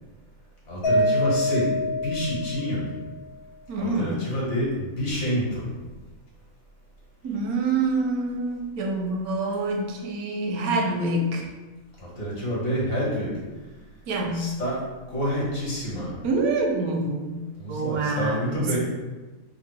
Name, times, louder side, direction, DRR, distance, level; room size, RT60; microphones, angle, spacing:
voice 1, 0.7-1.7 2.0-2.8 3.8-5.6 12.0-13.4 14.3-14.8 15.1-16.2 17.6-18.8, equal, 55° left, -6 dB, 1.6 m, -28 dB
Mallet percussion, 0.8-3.1, left 1 dB, 90° left, 1.4 m, -25 dB
voice 2, 3.7-4.2 7.2-11.5 14.1-14.5 16.2-17.4 17.7-18.8, right 2 dB, 85° right, 2 dB, 1.1 m, -26 dB
3.6 x 2.1 x 4.3 m, 1.2 s
omnidirectional pair, 1.5 m